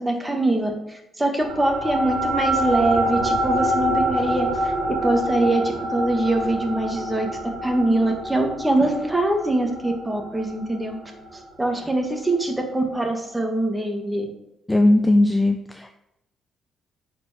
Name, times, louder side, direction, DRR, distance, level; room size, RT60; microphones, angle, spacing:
voice 1, 0.0-7.3 7.6-11.0 11.3-14.3, right 2 dB, 10° right, 3 dB, 1.6 m, -23 dB
sound 1, 1.4-12.2, equal, 60° right, 1.7 m, -26 dB
voice 2, 14.7-15.9, left 1 dB, 10° left, 6 dB, 0.5 m, -18 dB
9.3 x 4.5 x 4.3 m, 0.85 s
cardioid pair, 90°, 0 cm